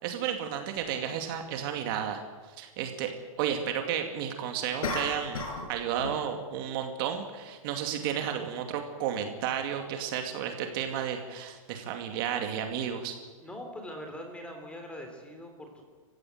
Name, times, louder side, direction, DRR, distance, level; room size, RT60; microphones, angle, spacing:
voice 1, 0.0-2.2 2.5-3.1 3.4-5.4 5.7-13.2, right 9 dB, 40° right, 5 dB, 2.4 m, -32 dB
sound 1, 0.8-0.9 4.8-5.7 6.0-6.3, left 3 dB, 85° left, 6.8 m, -34 dB
voice 2, 13.4-15.8, equal, 5° left, 4 dB, 3.3 m, -42 dB
27.0 x 15.5 x 7.9 m, 1.4 s
hypercardioid pair, 155°, 18 cm